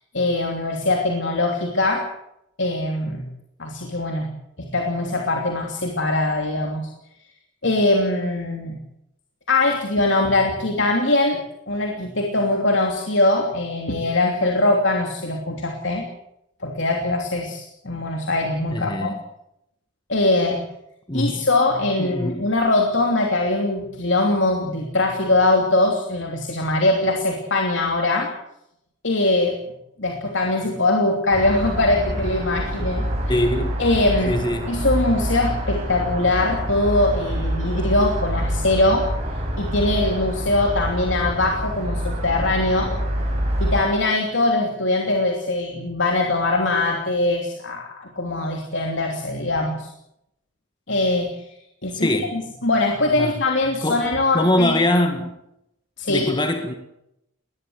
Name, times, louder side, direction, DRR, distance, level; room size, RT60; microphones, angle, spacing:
voice 1, 0.1-2.1 2.6-3.2 3.6-4.3 4.6-6.8 7.6-8.8 9.5-11.4 11.7-16.1 16.6-19.1 20.1-20.6 21.1-28.3 29.0-29.6 30.0-33.4 33.8-34.4 34.7-39.1 39.6-42.9 43.6-49.9 50.9-51.5 51.8-54.8 56.0-56.3, left 2 dB, 70° left, 2 dB, 3.0 m, -22 dB
voice 2, 18.7-19.2 21.1-21.5 22.0-22.4 33.3-33.8 34.3-34.7 51.9-52.4 53.2-53.3 53.8-54.0 54.3-55.3 56.1-56.7, left 1 dB, 20° left, 6 dB, 1.8 m, -22 dB
sound 1, 31.3-43.8, equal, 35° right, 6.8 m, -26 dB
21.0 x 19.5 x 7.9 m, 0.80 s
head